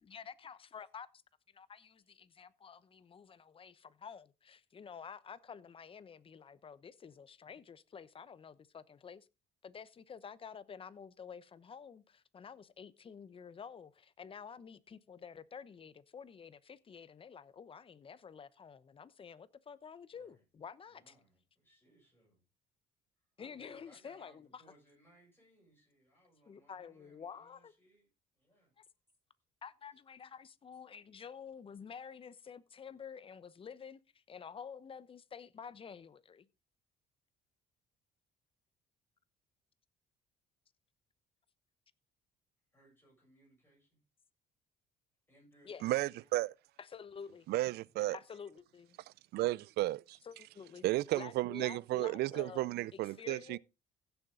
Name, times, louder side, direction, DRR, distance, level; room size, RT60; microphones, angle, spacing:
voice 1, 0.0-1.1 1.5-9.3 9.6-21.2 23.4-24.6 26.4-27.7 28.8-28.9 29.6-36.5 45.6-45.9 46.8-47.5 48.1-49.0 50.2-50.8 51.1-53.6, left 6 dB, 30° left, 0.9 m, -50 dB
voice 2, 20.1-20.4 20.9-22.4 23.4-28.1 28.4-28.8 42.7-44.0 45.3-46.3, equal, 15° left, 7.9 m, -66 dB
voice 3, 45.8-46.5 47.5-48.2 49.3-50.2 50.8-53.6, right 17 dB, 75° right, 0.5 m, -33 dB
16.0 x 7.2 x 3.8 m
cardioid pair, 110°, 17 cm